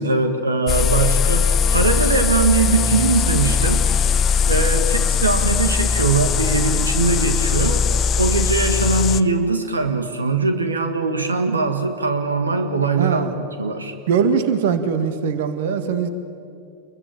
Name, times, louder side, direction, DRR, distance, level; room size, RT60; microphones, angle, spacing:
voice 1, 0.0-3.9 4.1-7.9 8.2-13.3 13.6-13.9, right 3 dB, 75° right, 7 dB, 1.8 m, -21 dB
sound 1, 0.7-9.2, left 6 dB, 25° left, 0.8 m, -20 dB
voice 2, 13.0-13.3 14.1-16.1, right 6 dB, 55° right, 9 dB, 2.0 m, -21 dB
28.5 x 22.5 x 9.0 m, 2.4 s
figure-of-eight pair, 90°, 0 cm